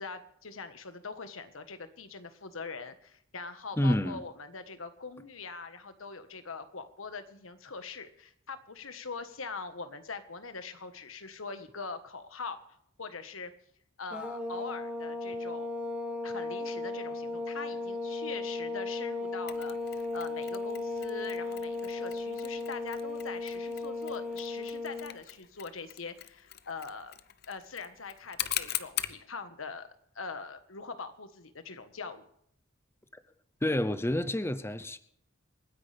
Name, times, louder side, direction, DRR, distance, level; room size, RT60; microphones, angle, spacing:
voice 1, 0.0-12.6 13.0-13.5 14.0-15.8 16.2-27.1 27.5-29.9 30.1-32.2, left 4 dB, 90° left, 1.4 m, -42 dB
voice 2, 3.8-4.2 33.6-35.0, left 1 dB, 10° left, 0.6 m, -28 dB
sound 1, 14.1-25.2, left 3 dB, 5° right, 1.9 m, -36 dB
Mechanisms, 19.5-29.2, left 12 dB, 55° left, 0.7 m, -41 dB
27.5 x 10.0 x 3.4 m
head